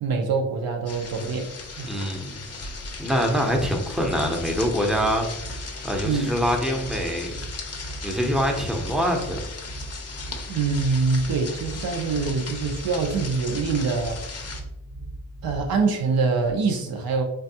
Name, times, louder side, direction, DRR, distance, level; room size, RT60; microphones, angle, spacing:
voice 1, 0.0-1.5 1.8-1.9 6.0-6.3 10.5-14.4 15.4-17.2, right 4 dB, 70° right, 3 dB, 0.5 m, -24 dB
sound 1, 0.8-14.6, left 4 dB, 40° left, 0.6 m, -38 dB
voice 2, 1.8-2.4 3.0-7.4 8.0-9.4, equal, ahead, 2 dB, 0.7 m, -25 dB
sound 2, 2.9-15.8, right 2 dB, 90° right, 0.9 m, -38 dB
3.3 x 2.2 x 2.7 m, 0.84 s
cardioid pair, 55°, 38 cm